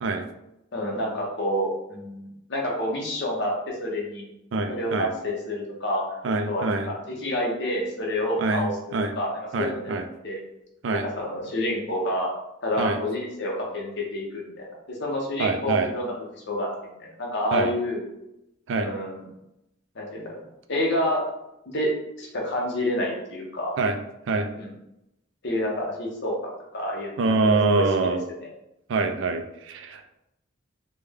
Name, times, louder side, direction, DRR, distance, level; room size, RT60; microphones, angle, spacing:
voice 1, 0.7-4.2 4.7-6.2 6.5-9.9 10.2-10.4 11.2-12.3 12.6-18.0 18.7-19.2 19.9-20.3 20.7-21.2 21.7-21.9 22.2-23.7 24.6-24.7 25.4-28.5, left 1 dB, 55° left, -2 dB, 0.8 m, -29 dB
voice 2, 4.5-5.1 6.2-6.9 8.4-9.1 9.5-10.1 10.8-11.0 12.8-13.0 15.4-15.9 17.5-17.7 18.7-18.9 23.8-23.9 24.3-24.5 27.2-28.2 28.9-30.1, right 3 dB, 60° right, 6 dB, 0.3 m, -25 dB
3.2 x 2.1 x 3.4 m, 0.86 s
head